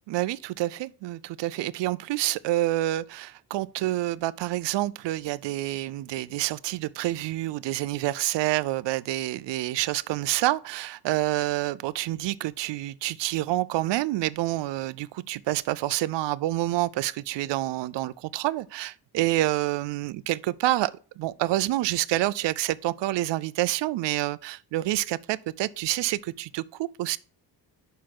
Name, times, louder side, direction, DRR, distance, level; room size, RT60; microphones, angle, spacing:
voice 1, 0.1-20.9 21.2-27.2, right 16 dB, 75° right, 0.5 m, -28 dB
5.7 x 4.7 x 6.0 m
cardioid pair, 130°, 43 cm